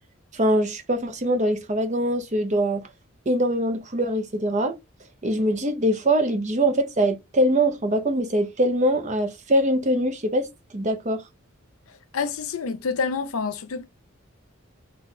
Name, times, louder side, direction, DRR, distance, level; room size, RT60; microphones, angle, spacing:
voice 1, 0.3-2.8 3.3-4.8 5.2-10.5 10.7-11.2, right 1 dB, 35° right, 0.6 m, -23 dB
voice 2, 12.1-13.8, left 5 dB, 85° left, 0.6 m, -27 dB
4.0 x 2.3 x 4.6 m
head